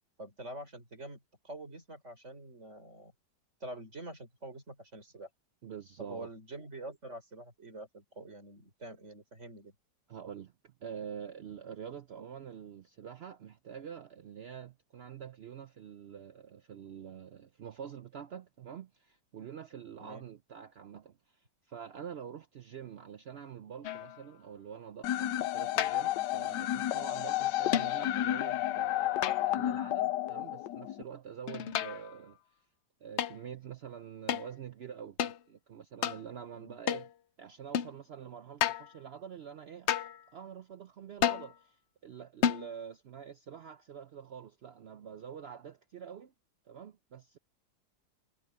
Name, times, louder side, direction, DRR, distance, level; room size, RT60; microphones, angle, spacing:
voice 1, 0.2-3.1 3.6-5.3 6.0-9.7 20.0-20.3 36.5-36.8, right 1 dB, 40° right, 4.6 m, -46 dB
voice 2, 5.6-6.3 10.1-32.4 33.0-35.2 35.5-37.1 37.4-46.3 46.7-47.4, right 8 dB, 90° right, 0.5 m, -46 dB
sound 1, 23.8-24.2 25.8-26.2 27.7-28.1 29.2-29.7 31.5-32.2 33.2-33.4 34.3-34.5 35.2-35.4 36.0-36.2 36.9-37.1 37.7-38.0 38.6-38.9 39.9-40.2 41.2-41.5 42.4-42.7, left 9 dB, 70° left, 0.6 m, -32 dB
sound 2, 25.0-31.0, left 14 dB, 85° left, 1.3 m, -31 dB
omnidirectional pair, 1.9 m